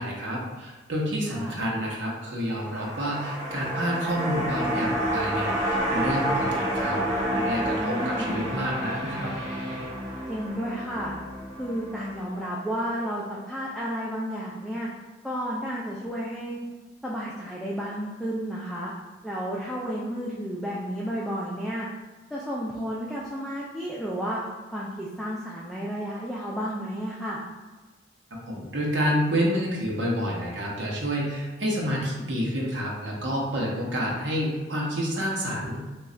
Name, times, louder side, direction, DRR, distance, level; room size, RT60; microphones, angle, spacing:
voice 1, 0.0-7.0 7.3-9.3 28.4-35.8, equal, 85° right, -3 dB, 0.9 m, -29 dB
voice 2, 1.3-1.6 7.8-8.4 10.3-11.1 11.6-14.9 15.2-16.6 17.0-18.9 19.2-21.9 22.3-24.4 24.7-27.4, equal, ahead, -6 dB, 0.4 m, -32 dB
sound 1, 2.5-12.9 13.3-13.4, right 1 dB, 40° right, 1.1 m, -29 dB
3.1 x 2.3 x 3.8 m, 1.2 s
head